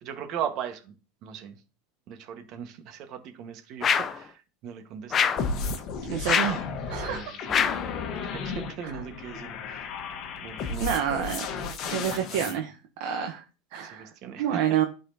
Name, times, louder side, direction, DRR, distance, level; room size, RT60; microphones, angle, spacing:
voice 1, 0.0-0.9 1.2-1.6 2.1-5.4 7.0-7.7 8.3-9.9 10.4-11.0 12.3-12.6 13.8-14.6, right 8 dB, 45° right, 1.4 m, -38 dB
sound 1, 3.8-4.2 5.1-5.5 6.3-6.6 7.5-7.9, left 7 dB, 25° left, 0.5 m, -24 dB
sound 2, 5.4-12.6, left 5 dB, 45° left, 1.2 m, -34 dB
voice 2, 6.0-7.2 8.8-9.0 10.8-11.5 11.9-13.4 13.7-14.1 14.4-14.8, right 9 dB, 60° right, 0.8 m, -28 dB
11.5 x 4.2 x 2.8 m
supercardioid pair, 130°, 0 cm